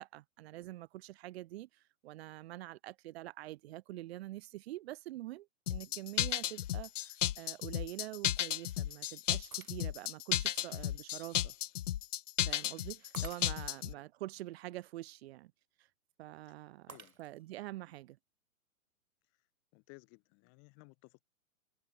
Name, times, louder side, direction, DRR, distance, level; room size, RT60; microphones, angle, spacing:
voice 1, 0.0-11.5 12.4-15.5 15.8-15.9 16.2-16.9 17.2-18.2, right 16 dB, 45° right, 1.9 m, -46 dB
sound 1, 5.7-13.9, left 12 dB, 60° left, 0.7 m, -34 dB
Shatter, 9.5-10.2 10.8-10.9 13.1-13.9 16.9-17.6, right 5 dB, 80° right, 3.9 m, -54 dB
voice 2, 13.2-13.5 13.9-14.1 16.9-17.2 19.7-21.3, left 36 dB, 35° left, 6.2 m, -59 dB
figure-of-eight pair, 110°, 42 cm